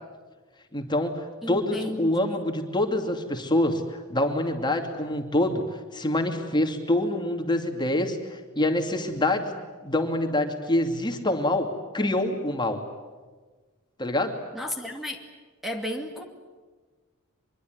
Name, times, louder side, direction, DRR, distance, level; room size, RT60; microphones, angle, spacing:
voice 1, 0.7-5.6 5.9-11.7 11.9-12.8 14.0-14.3, left 1 dB, 20° left, 4 dB, 2.6 m, -26 dB
voice 2, 1.4-2.5 14.5-15.2 15.6-16.2, left 1 dB, ahead, 3 dB, 2.4 m, -33 dB
24.5 x 23.5 x 9.5 m, 1.3 s
head